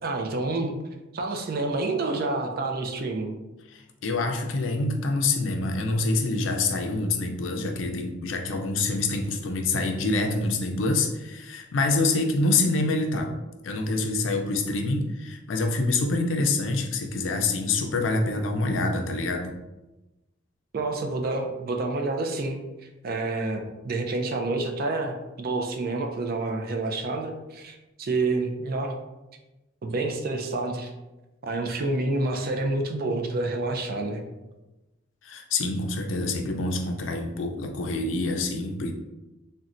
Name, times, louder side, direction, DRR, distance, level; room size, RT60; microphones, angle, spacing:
voice 1, 0.0-0.8 1.1-3.4 20.7-22.6 23.0-29.0 29.8-30.9 31.4-34.2, right 2 dB, 50° right, 4 dB, 0.4 m, -28 dB
voice 2, 3.7-13.3 13.6-19.5 35.2-38.9, left 2 dB, 90° left, 4 dB, 0.4 m, -26 dB
4.0 x 2.2 x 2.5 m, 1.0 s
head